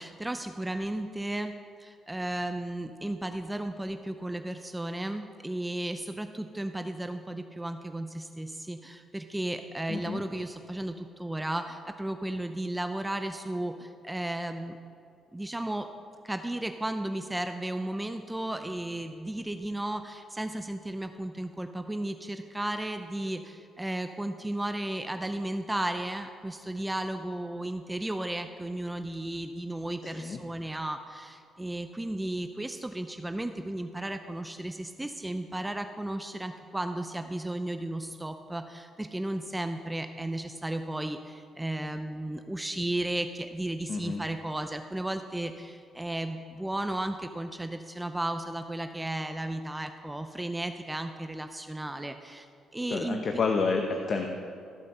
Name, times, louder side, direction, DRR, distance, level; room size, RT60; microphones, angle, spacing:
voice 1, 0.0-14.8 15.3-15.9 16.2-52.5 52.7-53.4, right 1 dB, 10° right, 7 dB, 0.5 m, -34 dB
voice 2, 9.9-10.2 30.1-30.4 43.9-44.2 52.9-54.3, left 4 dB, 50° left, 3 dB, 0.9 m, -29 dB
14.0 x 5.3 x 6.5 m, 2.5 s
cardioid pair, 90°, 0 cm